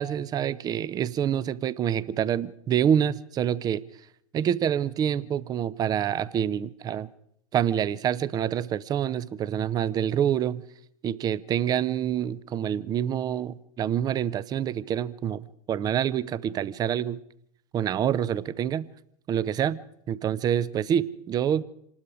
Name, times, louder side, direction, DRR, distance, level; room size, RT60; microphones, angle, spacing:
voice 1, 0.0-3.8 4.3-7.1 7.5-10.6 11.0-17.2 17.7-18.9 19.3-19.8 20.1-21.6, right 9 dB, 20° right, 19 dB, 0.7 m, -27 dB
27.0 x 19.5 x 5.0 m, 0.75 s
figure-of-eight pair, 100°, 19 cm